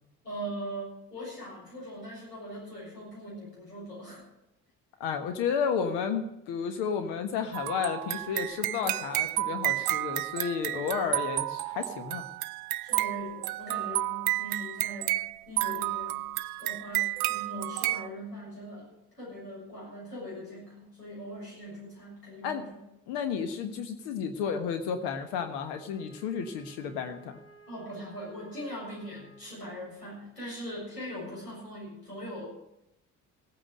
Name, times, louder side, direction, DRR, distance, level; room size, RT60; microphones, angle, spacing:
voice 1, 0.2-4.2 12.8-15.2 15.5-16.3 16.6-22.8 27.7-32.5, equal, 85° left, -6 dB, 7.2 m, -41 dB
voice 2, 5.0-12.2 22.4-22.6 23.1-27.3, left 6 dB, 55° left, 7 dB, 1.4 m, -32 dB
sound 1, 7.5-18.1, right 17 dB, 70° right, 0.5 m, -31 dB
Wind instrument woodwind instrument, 25.7-29.9, equal, 30° left, 3.9 m, -56 dB
16.5 x 8.9 x 6.5 m, 0.84 s
figure-of-eight pair, 55°, 47 cm